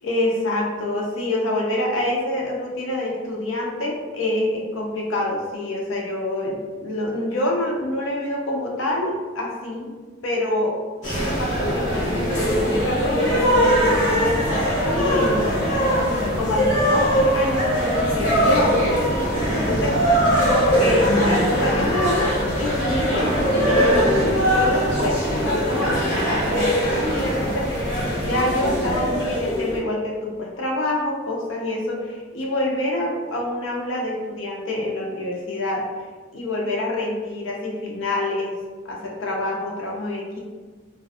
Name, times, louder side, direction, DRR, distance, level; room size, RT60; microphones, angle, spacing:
voice 1, 0.0-10.0 10.2-10.8 11.1-14.4 14.9-15.6 16.3-18.8 19.5-20.0 20.5-22.3 22.6-27.7 28.2-35.9 36.3-38.6 38.8-40.4, left 1 dB, 80° left, -1 dB, 0.6 m, -26 dB
sound 1, 11.0-29.8, equal, 55° left, 1.1 m, -21 dB
2.4 x 2.2 x 2.7 m, 1.4 s
head